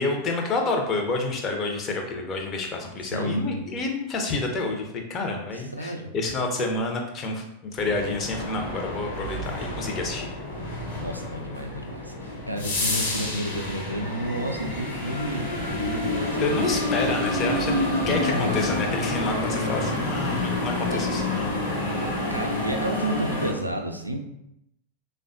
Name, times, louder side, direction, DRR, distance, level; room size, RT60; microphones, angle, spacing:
voice 1, 0.0-10.3 16.4-21.5, left 3 dB, 30° left, 3 dB, 0.5 m, -29 dB
voice 2, 3.0-3.8 5.5-6.2 11.0-16.8 18.2-18.8 20.9-21.1 22.3-24.2, right 1 dB, 85° right, 3 dB, 0.3 m, -31 dB
sound 1, 7.8-23.5, left 1 dB, 60° left, 0.9 m, -28 dB
3.3 x 2.1 x 2.5 m, 0.81 s
figure-of-eight pair, 90°, 0 cm